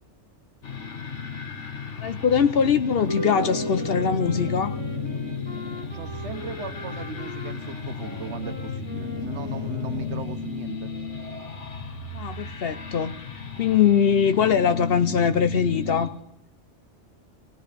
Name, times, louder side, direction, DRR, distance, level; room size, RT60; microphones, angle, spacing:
sound 1, 0.6-16.1, left 5 dB, 80° left, 1.6 m, -34 dB
voice 1, 2.0-4.8 12.1-13.1 13.6-16.1, left 7 dB, 60° left, 0.9 m, -22 dB
sound 2, 2.9-9.4, right 1 dB, 30° right, 1.3 m, -37 dB
Wind instrument woodwind instrument, 3.3-10.4, left 1 dB, 25° left, 1.3 m, -42 dB
voice 2, 5.9-10.9, right 7 dB, 70° right, 1.2 m, -38 dB
19.5 x 18.5 x 3.4 m
omnidirectional pair, 1.2 m